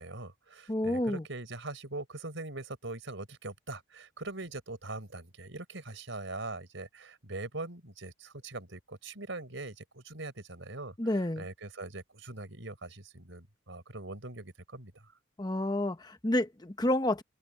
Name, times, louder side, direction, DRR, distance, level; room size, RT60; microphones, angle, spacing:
voice 1, 0.0-15.1, right 2 dB, 70° right, 4.0 m, -42 dB
voice 2, 0.7-1.2 11.0-11.5 15.4-17.2, left 1 dB, 20° left, 0.9 m, -29 dB
open air
head